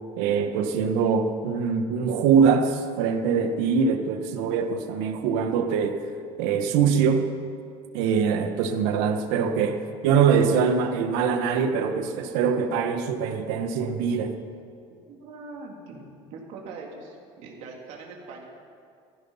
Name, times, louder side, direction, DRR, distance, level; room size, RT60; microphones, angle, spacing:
voice 1, 0.2-6.0 6.4-7.3 7.9-14.3, right 6 dB, 85° right, 7 dB, 1.5 m, -23 dB
voice 2, 15.1-16.0 16.3-18.4, right 3 dB, 60° right, -1 dB, 3.4 m, -42 dB
15.5 x 15.5 x 5.8 m, 2.3 s
cardioid pair, 160°, 13 cm